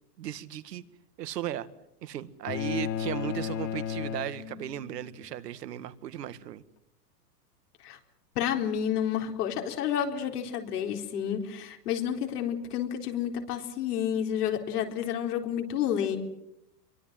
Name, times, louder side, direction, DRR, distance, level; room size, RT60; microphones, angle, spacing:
voice 1, 0.2-0.8 1.2-1.7 2.0-6.6, right 12 dB, 75° right, 14 dB, 1.9 m, -36 dB
sound 1, 2.5-5.0, left 9 dB, 50° left, 2.0 m, -34 dB
voice 2, 8.4-16.2, left 9 dB, 70° left, 3 dB, 4.2 m, -30 dB
26.5 x 23.5 x 7.7 m, 0.81 s
hypercardioid pair, 130°, 48 cm